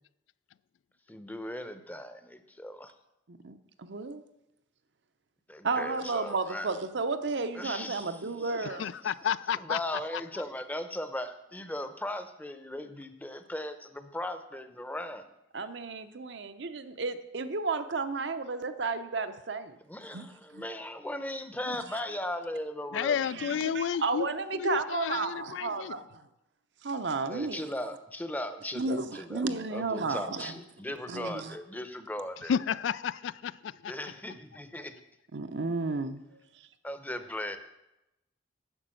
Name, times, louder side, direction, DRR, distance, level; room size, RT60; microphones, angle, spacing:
voice 1, 1.1-2.9 5.5-6.7 7.5-9.1 9.5-15.3 19.9-23.3 27.3-32.6 33.9-34.9 36.8-37.6, left 1 dB, 10° left, 0.7 m, -38 dB
voice 2, 3.3-4.2 5.6-8.9 15.5-19.8 20.1-20.3 20.5-20.6 21.7-21.8 23.3-26.0 26.8-27.7 28.7-30.6 31.1-31.6 35.3-36.2, right 3 dB, 65° right, 0.7 m, -33 dB
voice 3, 8.8-9.8 10.1-10.2 22.9-25.9 32.5-33.9, left 8 dB, 80° left, 0.3 m, -31 dB
9.9 x 6.0 x 7.7 m
head